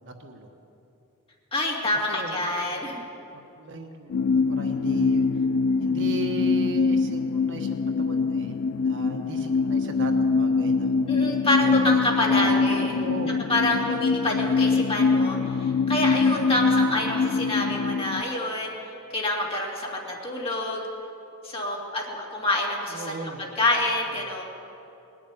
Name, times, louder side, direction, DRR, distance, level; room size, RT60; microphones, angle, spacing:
voice 1, 0.0-0.5 2.1-2.4 2.7-2.8 3.3-5.3 5.8-10.9 11.5-11.7 12.3-12.5 12.9-14.0 16.5-16.7 22.9-23.4, right 2 dB, 55° right, 3 dB, 1.3 m, -37 dB
voice 2, 1.5-3.1 11.1-12.9 13.5-20.8 21.4-24.4, left 1 dB, 25° left, -2 dB, 2.5 m, -27 dB
sound 1, 4.1-18.2, left 4 dB, 60° left, 0.3 m, -23 dB
19.5 x 7.4 x 9.6 m, 2.8 s
head